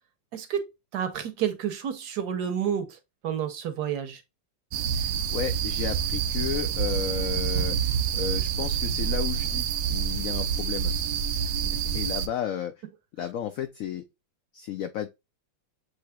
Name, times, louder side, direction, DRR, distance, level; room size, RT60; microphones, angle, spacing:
voice 1, 0.3-0.7 0.9-2.9 3.2-4.2, right 9 dB, 65° right, 1.3 m, -29 dB
sound 1, 4.7-12.3, right 8 dB, 85° right, 1.4 m, -27 dB
voice 2, 4.9-10.9 11.6-12.7 13.2-14.0 14.5-15.1, left 9 dB, 85° left, 0.7 m, -33 dB
7.6 x 3.1 x 2.2 m
omnidirectional pair, 2.0 m